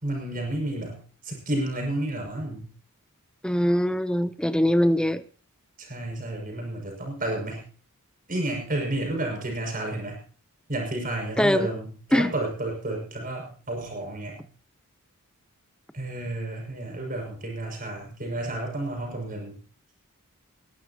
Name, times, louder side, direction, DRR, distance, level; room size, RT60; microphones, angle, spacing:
voice 1, 0.0-1.0 1.2-2.7 5.8-7.7 8.3-10.2 10.7-14.4 15.9-19.6, right 1 dB, 40° right, 2 dB, 6.1 m, -31 dB
voice 2, 3.4-5.2 11.4-11.7 12.1-12.3, equal, 5° left, 12 dB, 0.7 m, -22 dB
19.5 x 17.0 x 2.9 m, 0.41 s
head